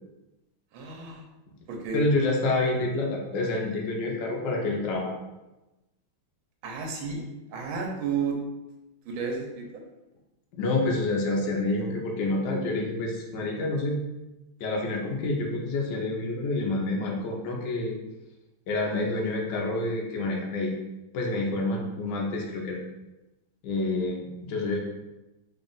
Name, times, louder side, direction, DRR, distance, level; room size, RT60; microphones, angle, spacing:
voice 1, 0.7-1.2 1.7-2.0 6.6-7.2 7.5-8.4 9.0-9.8, right 5 dB, 75° right, 0 dB, 1.5 m, -32 dB
voice 2, 1.6-5.1 10.6-14.0 14.6-18.0 18.7-20.8 21.1-22.8 23.6-24.8, left 2 dB, 65° left, -1 dB, 1.3 m, -28 dB
3.7 x 2.4 x 3.9 m, 0.99 s
omnidirectional pair, 2.3 m